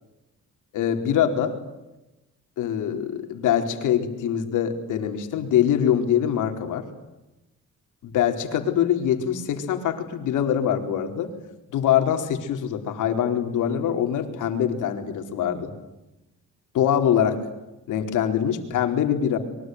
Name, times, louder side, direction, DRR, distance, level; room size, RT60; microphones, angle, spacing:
voice 1, 0.7-1.6 2.6-6.9 8.0-11.3 11.7-15.7 16.7-17.4 17.9-19.4, left 9 dB, 85° left, 6 dB, 4.3 m, -23 dB
25.5 x 23.5 x 9.5 m, 0.98 s
cardioid pair, 90°, 30 cm